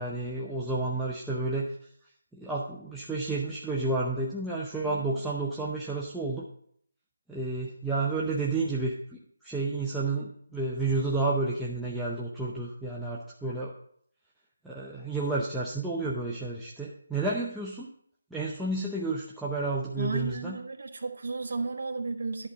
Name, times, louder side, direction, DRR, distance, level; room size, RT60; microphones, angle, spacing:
voice 1, 0.0-1.7 2.3-6.5 7.3-9.2 9.4-13.7 14.6-17.9 18.3-20.6, right 3 dB, ahead, -7 dB, 0.6 m, -31 dB
voice 2, 20.0-22.5, right 3 dB, 60° right, 2 dB, 1.2 m, -33 dB
11.0 x 4.3 x 6.6 m, 0.64 s
figure-of-eight pair, 165°, 0 cm